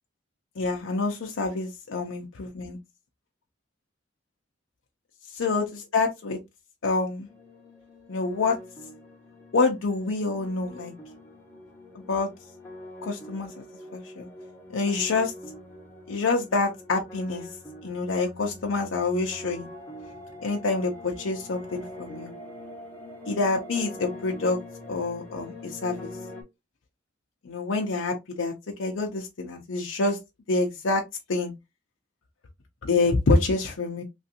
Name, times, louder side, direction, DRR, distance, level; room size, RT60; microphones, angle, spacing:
voice 1, 0.6-2.8 5.4-6.4 6.8-7.3 8.1-8.6 9.5-10.9 11.9-12.3 13.0-13.6 13.9-14.3 14.7-15.3 16.1-17.5 17.8-19.7 20.4-22.3 23.2-24.6 24.9-26.1 27.4-28.5 28.8-30.2 30.5-31.0 31.3-31.5 32.8-34.0, left 3 dB, 80° left, 0.6 m, -27 dB
sound 1, 7.3-26.4, left 1 dB, 10° left, 0.9 m, -44 dB
3.1 x 2.5 x 2.7 m
head